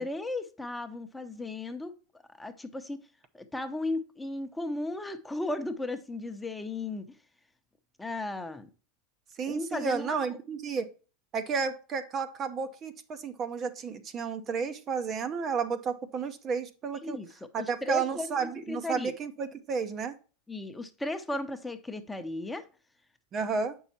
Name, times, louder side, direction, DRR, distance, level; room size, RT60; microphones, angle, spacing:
voice 1, 0.0-1.9 2.4-3.0 3.3-7.1 8.0-8.7 9.5-10.4 17.0-18.3 18.7-19.1 20.5-22.7, left 2 dB, 10° left, 0.8 m, -35 dB
voice 2, 9.4-10.9 11.3-17.2 17.5-20.2 23.3-23.8, right 5 dB, 35° right, 0.8 m, -32 dB
8.0 x 5.5 x 2.8 m
hypercardioid pair, 90°, 0 cm